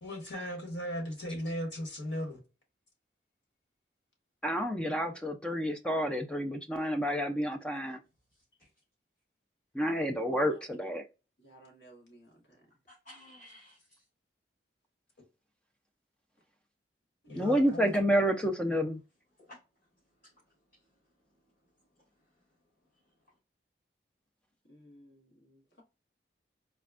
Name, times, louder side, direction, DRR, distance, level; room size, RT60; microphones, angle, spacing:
voice 1, 0.0-2.4 17.2-17.9, equal, 85° left, 1.5 m, -37 dB
voice 2, 4.4-8.0 9.7-11.0 17.4-19.0, equal, 5° left, 0.3 m, -29 dB
voice 3, 8.3-8.7 12.9-14.0 19.4-19.6 20.7-20.8 22.2-22.3, left 1 dB, 40° left, 1.6 m, -55 dB
voice 4, 11.4-12.7 24.7-25.8, right 1 dB, 65° left, 1.4 m, -58 dB
4.1 x 2.1 x 2.3 m
head